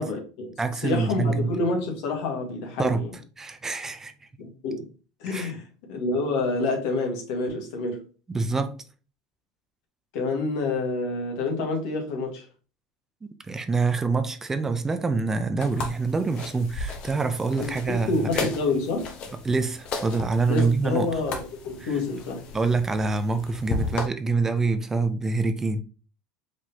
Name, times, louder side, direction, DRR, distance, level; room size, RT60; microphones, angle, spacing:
voice 1, 0.0-3.1 4.4-4.9 5.2-8.0 8.5-8.6 10.1-12.5 17.6-19.1 20.5-22.4, left 3 dB, 70° left, 1.6 m, -28 dB
voice 2, 0.6-1.5 2.8-3.0 3.4-4.3 5.3-5.5 8.3-8.8 13.2-18.5 19.4-21.1 21.8-21.9 22.5-25.8, right 4 dB, 20° right, 0.6 m, -26 dB
sound 1, 15.6-24.1, left 3 dB, 50° left, 1.2 m, -35 dB
4.8 x 3.7 x 2.8 m
hypercardioid pair, 95°, 2 cm